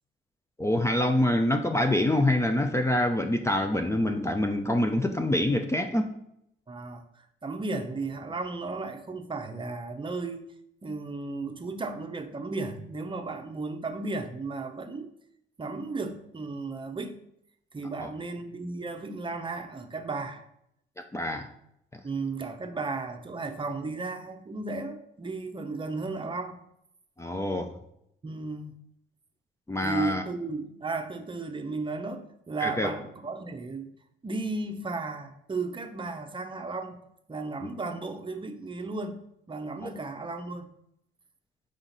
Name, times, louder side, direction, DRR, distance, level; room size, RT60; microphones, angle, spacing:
voice 1, 0.6-6.1 18.0-18.1 21.1-21.5 21.9-22.0 27.2-27.7 29.7-30.2 32.6-32.9 37.6-37.7 39.8-39.9, left 1 dB, 15° left, 0.5 m, -26 dB
voice 2, 6.7-10.5 10.8-15.1 15.6-17.2 17.7-20.4 22.0-26.6 28.2-28.8 29.8-33.9 34.2-37.0 37.3-39.2 39.5-40.7, right 3 dB, 25° right, 0.7 m, -34 dB
5.6 x 5.1 x 4.0 m
cardioid pair, 90°, 20 cm